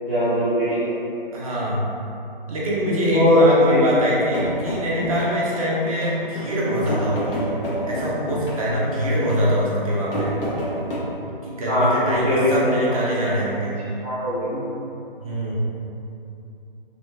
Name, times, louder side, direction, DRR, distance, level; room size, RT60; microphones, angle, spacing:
voice 1, 0.0-0.9 2.9-3.9 11.7-12.9 14.0-14.6, left 1 dB, 15° right, -16 dB, 0.3 m, -20 dB
voice 2, 1.3-1.8 2.5-7.5 7.9-10.3 11.4-13.8 15.2-15.5, equal, 35° right, -6 dB, 0.7 m, -24 dB
sound 1, 4.3-11.0, equal, 65° left, 1.1 m, -29 dB
3.2 x 3.0 x 2.7 m, 2.8 s
hypercardioid pair, 155°, 29 cm